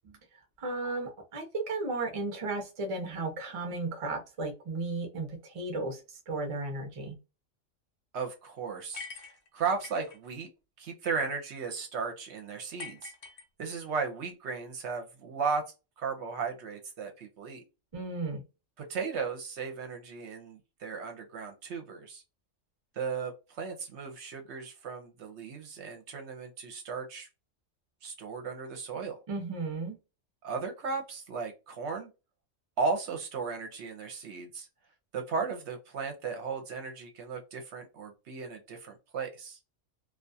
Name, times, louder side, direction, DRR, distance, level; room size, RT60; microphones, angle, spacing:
voice 1, 0.6-7.2 17.9-18.4 29.3-30.0, right 3 dB, 40° right, 4 dB, 0.5 m, -35 dB
voice 2, 8.1-9.1 9.5-10.5 10.8-13.1 13.6-15.6 16.0-17.6 18.8-22.2 22.9-27.3 28.0-29.2 30.4-32.1 32.8-34.7 35.1-39.6, right 5 dB, 70° right, 4 dB, 0.8 m, -35 dB
sound 1, 8.9-10.2 12.8-13.9, left 4 dB, 65° left, 0.9 m, -45 dB
2.3 x 2.2 x 2.6 m, 0.28 s
omnidirectional pair, 1.3 m